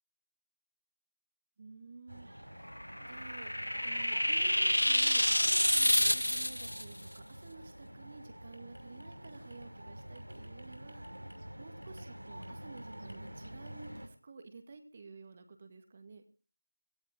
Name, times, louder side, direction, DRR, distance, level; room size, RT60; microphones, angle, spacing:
voice 1, 1.6-2.5 3.0-3.5 3.8-11.0 11.6-16.2, right 4 dB, 20° right, 7 dB, 2.1 m, -52 dB
sound 1, 2.1-14.1, equal, 70° right, 6.0 m, -48 dB
sound 2, 2.7-6.8, equal, 75° left, 0.8 m, -28 dB
17.5 x 17.0 x 3.7 m, 0.37 s
figure-of-eight pair, 170°, 0 cm